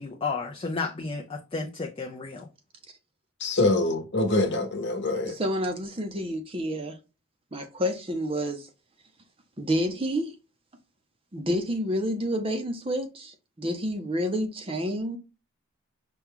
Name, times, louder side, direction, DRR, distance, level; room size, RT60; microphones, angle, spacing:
voice 1, 0.0-2.5, left 4 dB, 25° left, 0.4 m, -32 dB
voice 2, 3.4-5.3, left 2 dB, 50° left, 1.0 m, -25 dB
voice 3, 5.3-7.0 7.5-8.7 9.6-10.3 11.3-15.2, equal, 25° right, 0.6 m, -29 dB
5.7 x 2.3 x 3.5 m
head